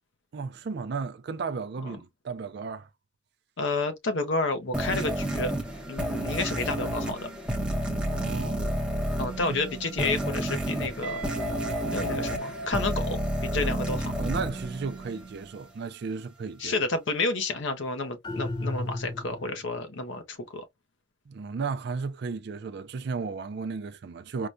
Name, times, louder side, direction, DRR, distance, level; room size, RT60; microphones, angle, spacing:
voice 1, 0.3-2.9 8.0-8.8 14.2-16.7 21.3-24.5, right 5 dB, 55° right, 0.4 m, -34 dB
voice 2, 3.6-5.5 5.9-7.3 9.2-11.2 11.9-14.1 16.6-20.6, left 3 dB, 65° left, 0.6 m, -30 dB
sound 1, 4.7-15.5, right 1 dB, 5° right, 0.7 m, -31 dB
Guitar, 11.0-13.8, right 2 dB, 40° right, 0.9 m, -37 dB
sound 2, 18.2-19.7, left 2 dB, 20° left, 0.4 m, -33 dB
4.7 x 2.1 x 2.5 m
head